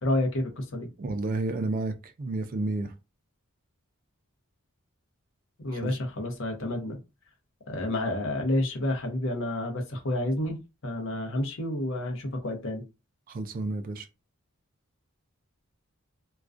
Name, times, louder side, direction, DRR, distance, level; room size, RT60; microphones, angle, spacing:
voice 1, 0.0-0.9 5.6-7.0 7.7-10.6 10.8-12.8, left 1 dB, 60° left, 0.7 m, -29 dB
voice 2, 1.0-2.9 5.7-6.0 13.3-14.1, right 2 dB, 40° right, 0.3 m, -31 dB
2.3 x 2.1 x 2.4 m
head